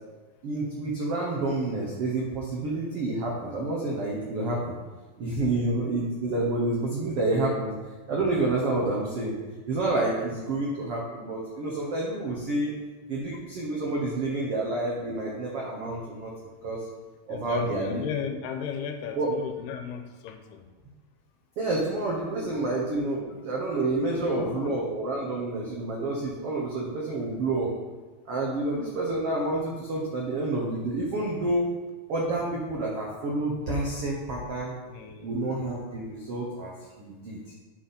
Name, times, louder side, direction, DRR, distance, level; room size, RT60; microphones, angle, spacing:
voice 1, 0.4-4.8 5.2-7.7 8.1-9.4 9.7-12.7 13.1-16.3 16.6-16.9 17.3-18.0 19.2-19.3 21.6-27.7 28.3-31.7 32.1-34.7 35.2-37.4, right 2 dB, 85° right, -3 dB, 1.3 m, -29 dB
voice 2, 17.3-20.6 22.4-22.5 24.2-24.7 26.5-26.6 34.9-35.4, left 7 dB, 80° left, 7 dB, 2.7 m, -36 dB
10.5 x 5.8 x 4.3 m, 1.3 s
omnidirectional pair, 4.6 m